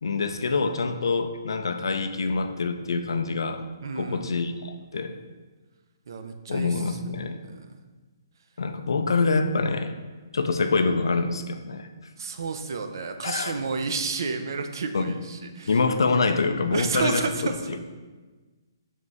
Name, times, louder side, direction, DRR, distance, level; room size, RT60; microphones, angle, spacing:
voice 1, 0.0-3.6 4.0-5.1 6.5-7.4 8.6-9.9 10.3-11.9 13.2-13.6 14.9-15.1 15.7-17.2, left 4 dB, 85° left, 8 dB, 0.4 m, -25 dB
voice 2, 3.8-4.3 6.1-7.8 12.2-15.8 16.7-17.8, right 4 dB, 65° right, 7 dB, 0.4 m, -31 dB
3.6 x 3.1 x 3.9 m, 1.3 s
hypercardioid pair, 160°, 2 cm